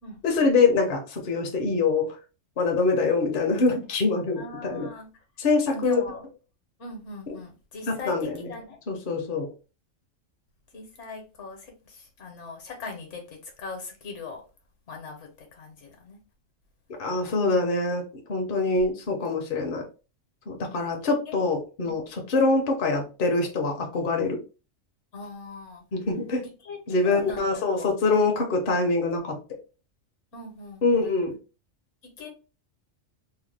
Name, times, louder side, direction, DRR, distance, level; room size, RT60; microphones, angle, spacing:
voice 1, 0.2-2.1 2.6-4.9 5.4-6.0 7.9-8.5 8.9-9.5 17.0-18.0 18.3-19.8 20.5-22.0 22.3-24.4 25.9-26.4 26.9-29.4 30.8-31.3, left 3 dB, 50° left, 0.7 m, -24 dB
voice 2, 4.4-5.1 5.7-6.3 6.8-8.8 10.7-14.4 14.9-16.2 18.8-18.9 21.2-21.5 21.8-22.1 25.1-25.8 26.4-27.9 30.3-31.1 32.2-32.3, left 4 dB, 70° left, 1.2 m, -40 dB
2.8 x 2.2 x 3.2 m
omnidirectional pair, 1.3 m